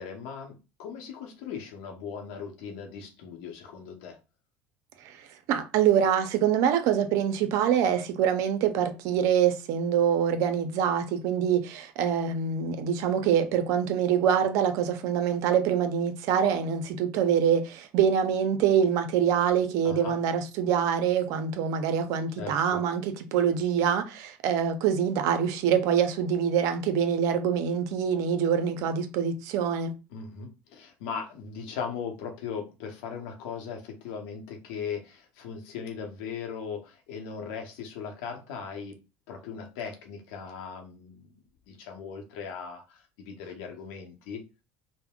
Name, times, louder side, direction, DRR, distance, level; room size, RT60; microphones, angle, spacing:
voice 1, 0.0-4.2 19.8-20.2 22.4-22.8 30.1-39.0 39.3-41.3 41.7-44.4, left 6 dB, 80° left, 0.8 m, -38 dB
voice 2, 5.5-29.9, right 8 dB, 70° right, 0.5 m, -25 dB
3.5 x 2.0 x 2.3 m
supercardioid pair, 85°, 6 cm